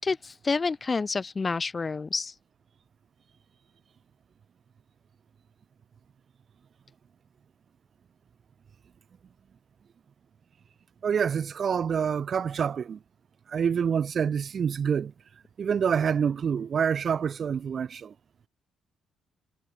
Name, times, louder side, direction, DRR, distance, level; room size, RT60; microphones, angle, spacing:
voice 1, 0.0-2.3, left 4 dB, 30° left, 5.4 m, -28 dB
voice 2, 11.0-13.0 13.5-15.1 15.6-18.1, right 7 dB, 50° right, 3.2 m, -27 dB
cardioid pair, 90°, 0 cm